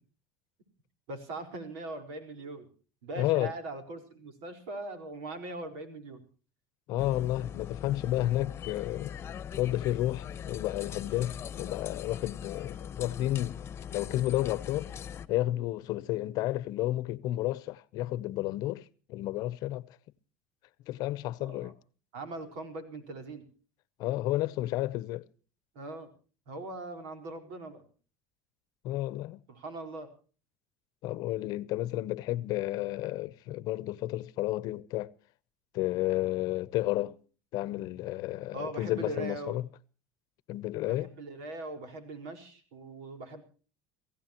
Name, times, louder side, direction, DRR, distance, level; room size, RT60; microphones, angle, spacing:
voice 1, 1.1-2.7 3.0-6.2 21.4-21.7 22.1-23.4 25.7-26.1 26.5-27.8 29.5-30.1 38.5-39.6 40.9-43.4, right 2 dB, 80° right, 4.8 m, -40 dB
voice 2, 3.1-3.5 6.9-9.2 9.5-13.6 13.9-14.9 15.3-20.0 20.9-21.7 24.0-25.2 28.8-29.4 31.0-35.1 35.7-37.2 37.5-39.6 40.5-41.1, left 15 dB, 60° left, 0.8 m, -31 dB
sound 1, 7.0-15.3, left 8 dB, 35° left, 1.0 m, -41 dB
28.5 x 16.0 x 3.0 m
supercardioid pair, 120°, 7 cm